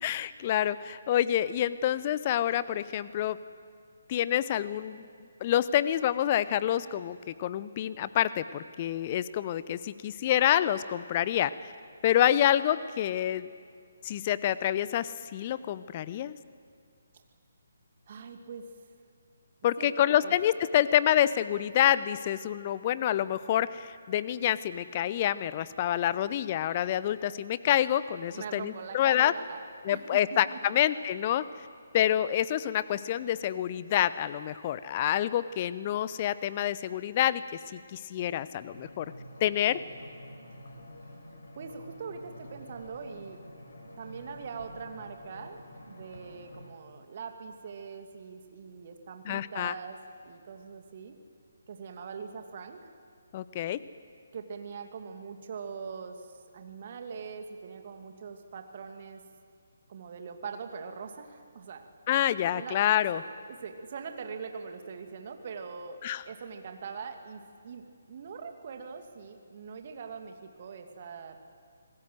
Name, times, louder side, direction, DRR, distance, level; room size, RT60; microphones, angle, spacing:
voice 1, 0.0-3.4 4.1-5.1 5.4-11.7 12.0-13.5 14.0-16.3 19.6-29.3 29.8-31.4 31.9-37.4 37.7-39.1 39.4-39.8 49.2-49.7 53.3-53.8 62.1-63.2 66.0-66.2, left 11 dB, 30° left, 16 dB, 0.8 m, -27 dB
voice 2, 18.1-18.7 19.8-19.9 20.2-20.4 28.3-29.6 29.9-30.8 41.5-43.4 44.0-45.6 45.9-51.2 51.7-52.8 54.3-59.2 59.9-61.9 62.5-62.8 63.5-66.0 66.3-71.4, right 5 dB, 40° right, 5 dB, 2.4 m, -42 dB
sound 1, 38.6-46.7, left 1 dB, 55° left, 5.9 m, -48 dB
26.5 x 20.0 x 7.9 m, 2.2 s
figure-of-eight pair, 140°, 0 cm